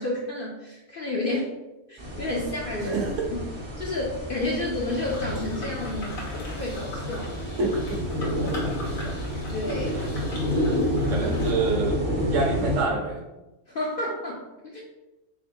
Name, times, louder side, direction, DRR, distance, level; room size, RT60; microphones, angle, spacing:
voice 1, 0.0-1.5 1.9-3.0 3.3-3.4 3.8-6.2 6.5-7.3 9.5-10.0 11.1-11.3 13.7-14.8, left 2 dB, 60° left, -3 dB, 0.6 m, -30 dB
sound 1, 2.0-12.8, left 1 dB, 30° right, 0.5 m, -29 dB
voice 2, 2.8-3.2 7.6-9.2 9.9-10.1 11.1-13.2, right 3 dB, 65° right, 1 dB, 1.0 m, -28 dB
sound 2, 4.7-11.5, left 2 dB, 75° left, 1.5 m, -40 dB
3.7 x 3.5 x 2.6 m, 1.0 s
omnidirectional pair, 1.5 m